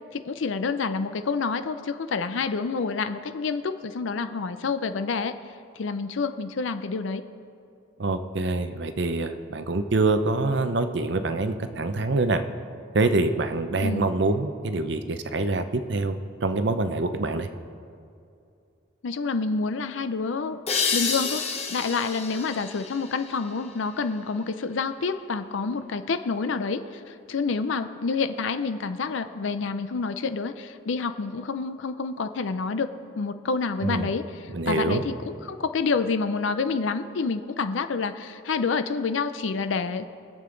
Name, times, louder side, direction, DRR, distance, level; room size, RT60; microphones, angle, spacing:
voice 1, 0.1-5.3 5.7-7.2 13.8-14.1 19.0-20.6 20.9-32.9 33.2-40.1, left 4 dB, 70° left, 10 dB, 0.5 m, -28 dB
voice 2, 8.0-12.4 12.9-17.5 33.8-34.1 34.5-35.0, right 3 dB, 60° right, 9 dB, 0.6 m, -25 dB
sound 1, 20.7-24.1, left 5 dB, 30° left, 1.0 m, -30 dB
22.0 x 7.6 x 3.9 m, 2.4 s
head